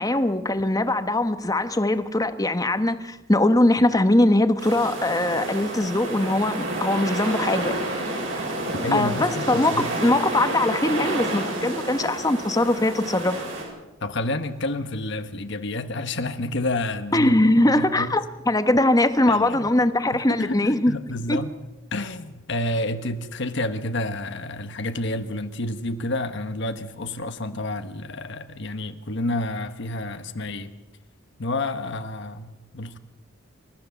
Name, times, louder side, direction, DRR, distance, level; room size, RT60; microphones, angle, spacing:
voice 1, 0.0-7.7 8.9-13.4 17.1-20.9 21.3-21.4, left 1 dB, 15° left, 10 dB, 1.1 m, -21 dB
sound 1, 4.6-13.6, right 1 dB, 65° right, 7.5 m, -29 dB
voice 2, 8.8-9.9 14.0-18.1 19.3-19.7 20.1-21.5 21.9-30.7 31.4-33.0, left 2 dB, 60° left, 9 dB, 1.2 m, -29 dB
28.5 x 14.0 x 7.0 m, 1.0 s
head